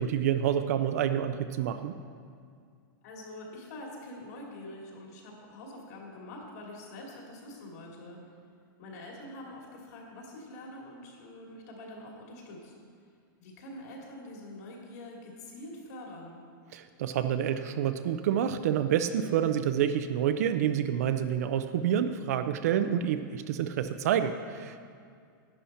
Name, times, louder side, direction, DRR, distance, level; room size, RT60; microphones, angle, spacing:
voice 1, 0.0-2.0 16.7-24.8, right 9 dB, 45° right, 10 dB, 0.4 m, -28 dB
voice 2, 3.0-8.2 8.8-12.7 13.4-16.4, left 1 dB, 50° left, -1 dB, 2.4 m, -45 dB
11.0 x 10.0 x 4.3 m, 2.2 s
supercardioid pair, 180°, 11 cm